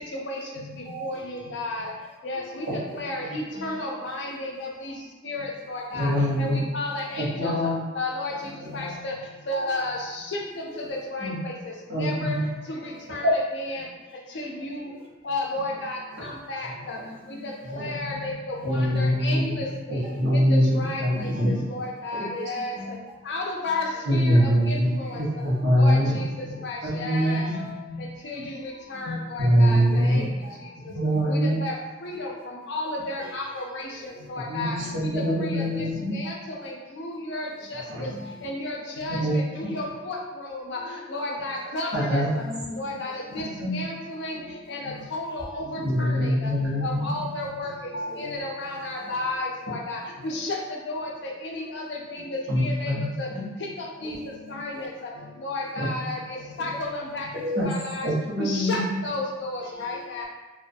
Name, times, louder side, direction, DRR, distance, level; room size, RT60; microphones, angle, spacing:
voice 1, 0.1-1.9 2.2-4.9 5.2-7.5 7.9-9.1 9.5-10.4 10.8-12.3 12.7-13.8 14.3-14.9 15.2-17.0 17.3-23.0 23.3-25.3 25.8-30.2 31.2-31.7 32.0-32.3 32.7-33.9 34.3-35.9 36.1-38.1 38.4-42.4 42.8-44.4 44.7-46.5 46.8-50.6 50.9-52.9 53.2-53.3 53.6-53.7 54.0-54.2 54.5-58.1 58.4-60.2, left 2 dB, 60° left, -1 dB, 0.4 m, -33 dB
voice 2, 0.9-1.2 2.6-3.0 6.1-6.2 6.5-6.6 6.9-7.0 8.4-8.9 10.7-10.8 16.1-16.3 16.9-17.8 20.0-20.1 20.6-20.8 21.1-21.4 22.4-22.7 24.7-24.8 27.2-27.3 28.9-29.0 29.6-30.5 33.2-33.3 33.9-34.3 35.6-35.7 38.1-38.4 41.2-41.3 42.4-42.9 45.9-46.0 48.1-48.3 48.6-49.1 50.2-50.4 54.0-54.3 54.7-54.8 57.3-57.6, equal, 30° right, -4 dB, 0.4 m, -39 dB
voice 3, 5.9-6.6 7.2-7.8 11.2-11.4 11.9-12.5 13.2-13.3 17.7-17.9 18.6-19.6 19.9-21.6 22.2-22.3 24.1-24.9 25.1-26.1 26.5-27.5 29.4-30.3 30.9-31.6 34.5-36.1 37.9-38.1 39.1-39.4 41.9-42.3 43.4-43.7 45.8-47.1 52.5-53.5 55.9-56.1 57.6-57.7 58.0-58.9, equal, 90° right, -7 dB, 1.0 m, -24 dB
2.3 x 2.2 x 2.6 m, 1.2 s
head